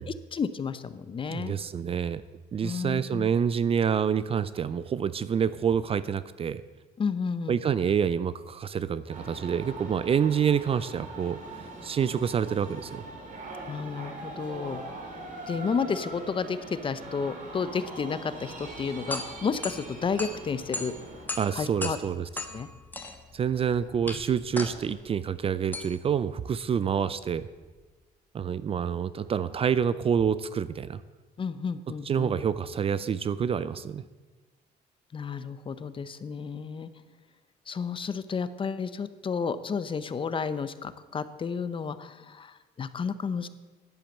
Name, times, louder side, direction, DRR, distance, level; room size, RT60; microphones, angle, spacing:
voice 1, 0.1-1.5 2.6-3.3 7.0-7.6 13.7-14.8 15.5-20.9 21.5-22.0 22.5-22.7 31.4-32.3 35.1-36.9 37.7-43.5, left 5 dB, 30° left, 14 dB, 0.7 m, -32 dB
voice 2, 1.3-2.2 2.5-6.6 7.5-13.0 21.4-22.3 23.3-27.5 28.3-31.0 32.0-34.0, right 7 dB, 35° right, 16 dB, 0.4 m, -27 dB
sound 1, 9.1-21.3, right 2 dB, 50° right, 3.2 m, -42 dB
sound 2, 18.7-27.8, left 2 dB, 10° left, 1.3 m, -39 dB
10.5 x 8.5 x 7.2 m, 1.3 s
cardioid pair, 110°, 17 cm